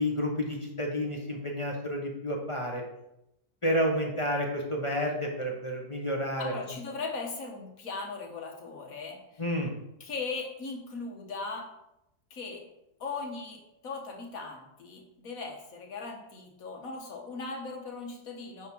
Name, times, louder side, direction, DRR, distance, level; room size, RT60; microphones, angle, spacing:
voice 1, 0.0-2.8 3.6-6.5 9.4-9.7, equal, 20° left, 0 dB, 0.9 m, -30 dB
voice 2, 6.4-9.4 10.0-11.7 12.3-12.6 13.0-18.7, left 4 dB, 50° left, 0 dB, 1.7 m, -38 dB
9.1 x 3.6 x 6.1 m, 0.88 s
omnidirectional pair, 1.9 m